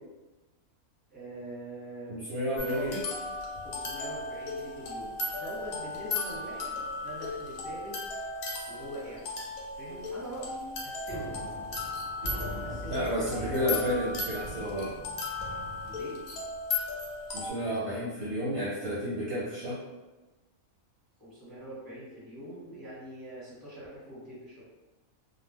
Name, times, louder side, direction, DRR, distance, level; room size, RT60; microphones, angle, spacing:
voice 1, 1.1-2.2 2.7-2.9 3.6-8.0 8.7-9.3 9.8-11.4 12.6-13.5 15.9-16.2 21.2-24.6, right 1 dB, 15° right, -9 dB, 1.1 m, -43 dB
voice 2, 2.1-3.0 12.9-14.9 17.3-19.8, equal, 60° right, -8 dB, 0.9 m, -31 dB
sound 1, 2.6-17.5, left 3 dB, 80° left, 1.0 m, -36 dB
sound 2, 5.2-6.1 6.4-6.7 7.0-7.2 7.5-7.7 8.1-8.2 8.7-9.0 9.3-9.4 9.9-10.7 11.1-16.0, equal, 40° right, 0.4 m, -44 dB
2.4 x 2.0 x 3.2 m, 1.1 s
omnidirectional pair, 1.4 m